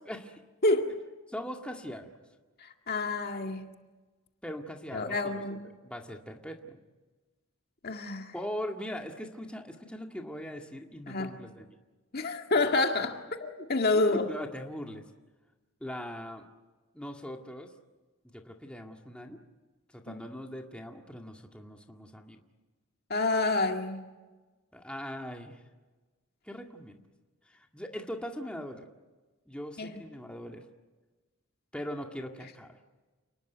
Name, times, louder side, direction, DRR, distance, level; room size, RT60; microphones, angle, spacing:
voice 1, 0.1-0.4 1.3-2.1 4.4-5.4 5.8-6.8 8.3-11.7 13.9-15.1 15.8-16.5 16.9-17.7 18.3-19.4 19.9-22.4 24.7-25.6 26.4-27.0 27.5-28.9 29.5-30.6 31.7-32.8, equal, 5° left, 2 dB, 1.9 m, -40 dB
voice 2, 0.6-0.9 2.6-3.7 4.9-5.6 7.8-8.3 11.1-11.3 12.1-14.3 20.1-20.2 23.1-24.0 29.8-30.0, left 2 dB, 45° left, 4 dB, 2.0 m, -28 dB
29.5 x 20.0 x 9.2 m, 1.2 s
head